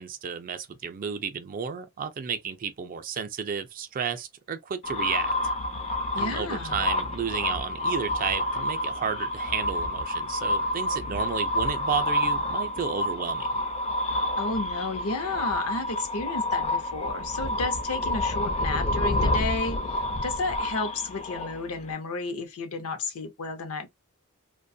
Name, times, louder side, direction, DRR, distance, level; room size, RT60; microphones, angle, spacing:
voice 1, 0.0-5.3 6.2-13.6, right 6 dB, 40° right, 0.4 m, -32 dB
sound 1, 4.8-21.9, left 1 dB, 30° left, 0.4 m, -29 dB
voice 2, 6.1-6.8 14.4-23.9, left 3 dB, 75° left, 0.7 m, -32 dB
2.4 x 2.2 x 2.6 m
head